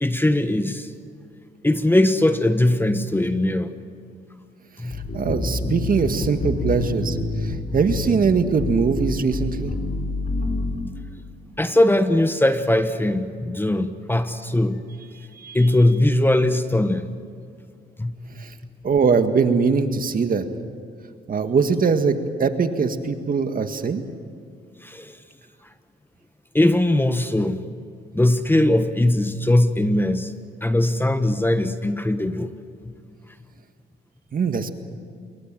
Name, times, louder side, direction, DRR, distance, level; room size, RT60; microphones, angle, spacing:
voice 1, 0.0-0.9 1.6-3.7 4.8-5.0 11.6-14.8 15.5-17.1 18.0-18.1 24.8-25.2 26.5-27.7 28.1-30.3 30.6-32.5, left 1 dB, 10° left, 9 dB, 1.3 m, -20 dB
voice 2, 4.8-7.2 7.4-9.7 15.4-15.6 18.4-18.5 18.8-20.4 21.3-24.0 34.3-34.7, right 5 dB, 45° right, 7 dB, 1.9 m, -22 dB
sound 1, 4.9-10.9, left 2 dB, 40° left, 5.1 m, -27 dB
27.5 x 22.5 x 7.7 m, 2.2 s
cardioid pair, 90°, 20 cm